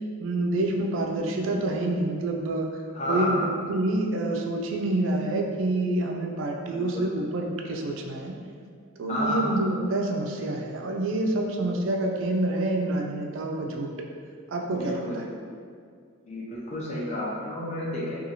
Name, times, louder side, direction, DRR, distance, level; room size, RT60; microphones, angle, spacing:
voice 1, 0.2-2.7 3.1-8.3 9.0-13.9 14.5-15.3, right 2 dB, 60° right, 1 dB, 0.3 m, -27 dB
voice 2, 2.9-3.4 6.7-7.1 9.1-9.5 14.8-15.2 16.3-18.2, left 1 dB, 30° left, -6 dB, 0.5 m, -30 dB
2.7 x 2.3 x 2.7 m, 2.1 s
head